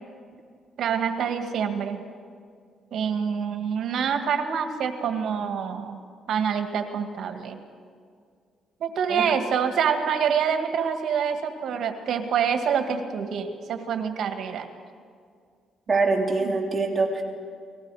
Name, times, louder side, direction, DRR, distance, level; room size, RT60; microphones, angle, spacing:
voice 1, 0.8-2.0 2.9-6.0 6.3-7.6 8.8-14.7 16.4-16.5, right 7 dB, 70° right, 6 dB, 1.9 m, -26 dB
voice 2, 15.9-17.2, right 3 dB, 30° right, 1 dB, 2.8 m, -24 dB
29.0 x 20.0 x 4.9 m, 2.2 s
cardioid pair, 90°, 0 cm